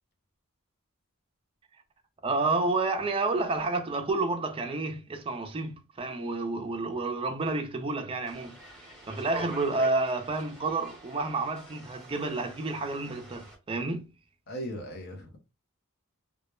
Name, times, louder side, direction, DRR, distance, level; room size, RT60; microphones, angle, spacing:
voice 1, 2.2-8.6 9.1-14.1, right 3 dB, 25° right, 0.4 m, -30 dB
sound 1, 8.3-13.6, right 1 dB, 5° left, 0.8 m, -46 dB
voice 2, 14.5-15.4, equal, 45° left, 0.6 m, -38 dB
2.2 x 2.0 x 3.0 m
head